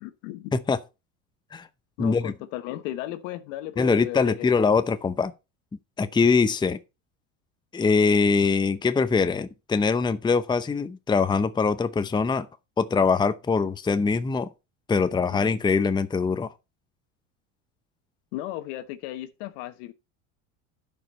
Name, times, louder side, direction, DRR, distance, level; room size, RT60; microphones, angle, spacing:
voice 1, 0.0-0.5 2.0-4.5 15.3-15.4 18.3-19.9, left 15 dB, 75° left, 1.2 m, -35 dB
voice 2, 2.0-2.3 3.8-5.3 6.0-6.8 7.7-12.5 12.8-14.5 14.9-16.5, left 4 dB, 10° left, 0.6 m, -23 dB
12.0 x 5.3 x 4.3 m
supercardioid pair, 95°, 39 cm